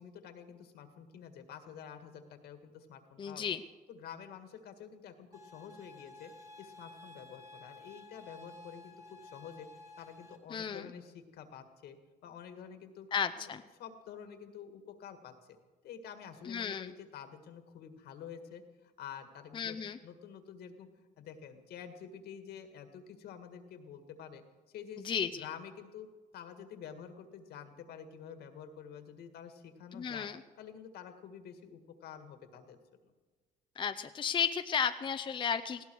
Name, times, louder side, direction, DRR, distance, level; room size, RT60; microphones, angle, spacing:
voice 1, 0.0-3.4 3.9-6.3 6.6-9.7 10.0-12.0 12.2-13.1 13.4-15.3 15.8-19.8 20.0-20.9 21.2-24.4 24.7-26.1 26.3-30.3 30.6-32.8, left 8 dB, 70° left, 7 dB, 1.9 m, -49 dB
voice 2, 3.2-3.6 10.5-10.9 13.1-13.6 16.5-16.9 19.5-20.0 25.0-25.5 29.9-30.4 33.8-35.8, left 7 dB, 30° left, 8 dB, 0.6 m, -34 dB
sound 1, 5.3-10.4, left 2 dB, 15° right, 2.1 m, -53 dB
19.0 x 16.5 x 4.7 m, 1.3 s
cardioid pair, 110°, 17 cm